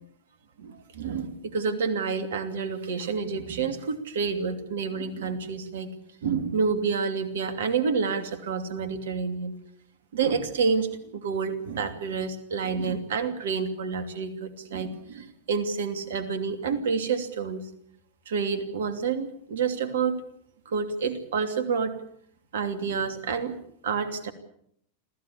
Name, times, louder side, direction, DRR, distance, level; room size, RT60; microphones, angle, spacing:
voice 1, 0.6-5.9 6.2-9.5 10.1-17.6 18.3-20.2 20.7-21.9 22.5-23.5 23.8-24.3, right 5 dB, 60° right, 10 dB, 2.8 m, -28 dB
26.5 x 15.5 x 8.6 m, 0.70 s
figure-of-eight pair, 90°, 0 cm